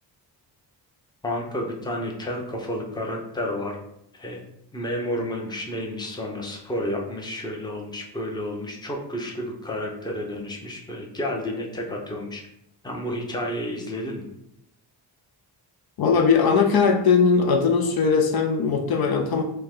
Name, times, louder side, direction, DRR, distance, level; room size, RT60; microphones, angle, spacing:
voice 1, 1.2-3.8 4.1-4.4 4.7-12.4 12.8-14.2, left 1 dB, 10° left, 0 dB, 0.7 m, -31 dB
voice 2, 16.0-19.4, left 5 dB, 65° left, 4 dB, 0.6 m, -20 dB
5.7 x 2.2 x 3.6 m, 0.77 s
wide cardioid pair, 135°, 40 cm